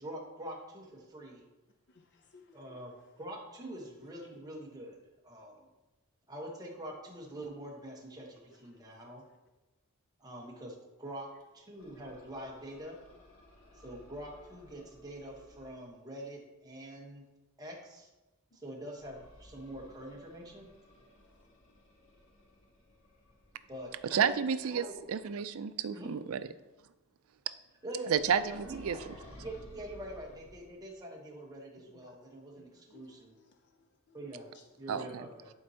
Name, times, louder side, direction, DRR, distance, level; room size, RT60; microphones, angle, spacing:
voice 1, 0.0-1.4 2.5-5.0 5.2-5.7 6.3-9.2 10.2-11.3 11.5-13.0 13.7-17.2 17.6-18.1 18.5-20.7 23.7-24.4 24.7-24.9 25.9-26.1 27.8-29.0 29.4-33.3 34.1-34.5 34.8-35.5, right 1 dB, 20° right, -1 dB, 1.2 m, -45 dB
voice 2, 1.9-2.8 4.2-4.3 8.5-8.6 9.0-9.1 21.2-21.5 31.9-32.2 32.6-34.3 34.5-34.7, left 3 dB, 55° left, 3 dB, 0.6 m, -62 dB
sound 1, 11.8-15.8 18.9-25.3 28.1-31.0, left 1 dB, 85° left, 1.4 m, -56 dB
voice 3, 24.1-26.4 28.1-29.0 34.9-35.2, right 7 dB, 80° right, 13 dB, 0.4 m, -31 dB
10.5 x 4.4 x 2.8 m, 1.1 s
head